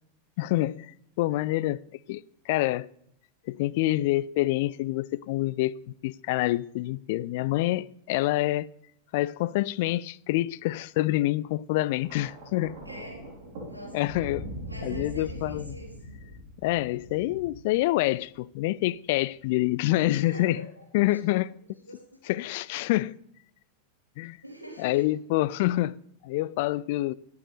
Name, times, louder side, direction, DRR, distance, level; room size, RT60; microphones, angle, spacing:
voice 1, 0.4-1.8 2.1-2.9 3.5-8.7 9.1-12.8 13.9-14.5 14.8-15.8 16.6-20.6 20.9-21.6 22.2-23.2 24.2-24.4 24.8-27.1, left 17 dB, 50° left, 0.3 m, -27 dB
Thunder, 12.0-18.3 19.3-19.6, equal, 50° right, 3.7 m, -41 dB
voice 2, 12.8-13.2 13.7-14.0 14.7-16.1 20.0-20.7 21.1-21.4 21.8-22.0 24.4-25.0, equal, 85° right, 3.4 m, -43 dB
20.0 x 7.0 x 3.3 m
figure-of-eight pair, 90°, 0 cm